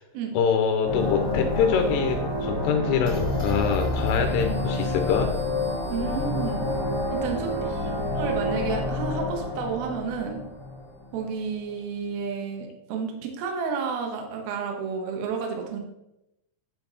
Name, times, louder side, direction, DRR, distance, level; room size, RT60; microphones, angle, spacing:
voice 1, 0.3-5.3, left 7 dB, 85° left, 4 dB, 3.2 m, -24 dB
sound 1, 0.8-11.4, left 1 dB, 10° right, 1.3 m, -28 dB
voice 2, 5.9-6.7 7.1-10.4 11.1-15.8, right 6 dB, 75° right, 2 dB, 2.3 m, -31 dB
10.0 x 4.5 x 4.0 m, 0.88 s
omnidirectional pair, 5.7 m